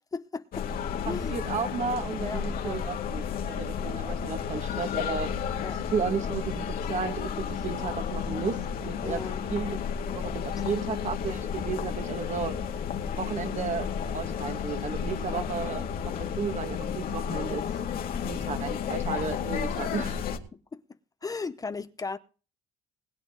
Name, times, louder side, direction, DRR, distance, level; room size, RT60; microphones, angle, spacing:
voice 1, 0.1-0.7 1.0-1.4 2.2-2.8 5.6-5.8 9.0-9.4 15.3-15.7 20.5-20.6 21.2-22.2, left 4 dB, 20° left, 0.7 m, -36 dB
sound 1, 0.5-20.4, left 7 dB, 60° left, 2.2 m, -32 dB
voice 2, 1.1-5.5 5.9-9.2 9.5-9.8 10.1-12.6 13.2-17.6 18.2-20.2, right 6 dB, 45° right, 1.8 m, -33 dB
20.5 x 9.5 x 3.8 m
cardioid pair, 110°, 17 cm